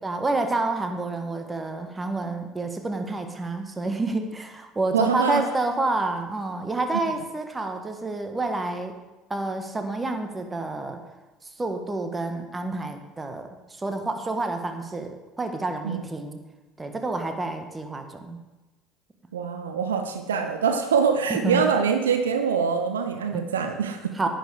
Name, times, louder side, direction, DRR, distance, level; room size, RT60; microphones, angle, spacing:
voice 1, 0.0-9.0 9.3-11.0 11.6-16.4 16.8-18.4 21.4-21.6 23.3-23.4 24.1-24.3, right 2 dB, 20° right, 6 dB, 1.5 m, -29 dB
voice 2, 4.9-5.4 15.8-16.0 19.3-24.3, right 6 dB, 80° right, 7 dB, 0.7 m, -24 dB
10.5 x 9.2 x 4.9 m, 1.1 s
figure-of-eight pair, 65°, 0 cm